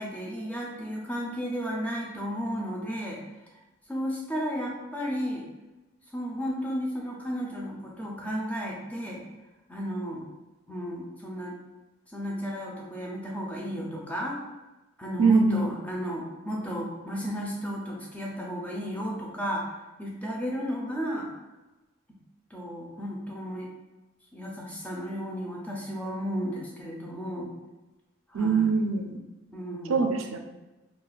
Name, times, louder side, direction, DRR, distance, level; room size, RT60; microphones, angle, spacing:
voice 1, 0.0-3.2 3.9-5.4 6.1-9.2 9.7-10.2 10.7-11.6 12.1-14.4 15.0-19.7 20.0-21.3 22.5-23.7 24.3-27.5 28.3-28.9 29.5-30.2, equal, 5° left, -2 dB, 0.4 m, -33 dB
voice 2, 15.2-15.8 28.3-29.2 29.9-30.4, right 4 dB, 85° right, 5 dB, 0.4 m, -23 dB
2.3 x 2.3 x 3.9 m, 1.1 s
head